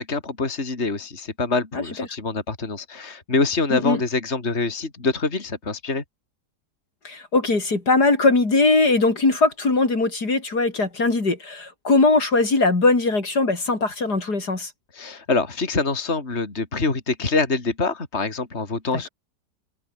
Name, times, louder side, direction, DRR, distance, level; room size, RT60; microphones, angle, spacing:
voice 1, 0.0-6.0 14.9-19.1, left 3 dB, 40° left, 3.4 m, -25 dB
voice 2, 7.0-14.7, left 3 dB, 65° left, 4.9 m, -20 dB
omnidirectional pair, 1.8 m